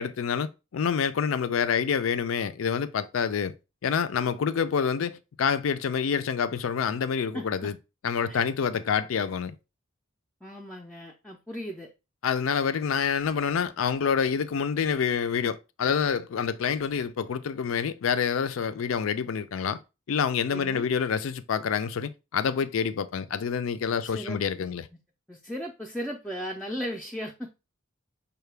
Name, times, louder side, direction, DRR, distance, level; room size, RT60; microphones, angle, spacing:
voice 1, 0.0-3.5 3.8-7.8 8.0-9.6 12.2-19.8 20.1-24.9, left 6 dB, 75° left, 0.4 m, -27 dB
voice 2, 7.3-7.7 8.3-8.5 10.4-11.9 20.5-20.9 24.0-24.4 25.3-27.6, equal, 5° left, 0.4 m, -36 dB
5.5 x 2.2 x 3.3 m
head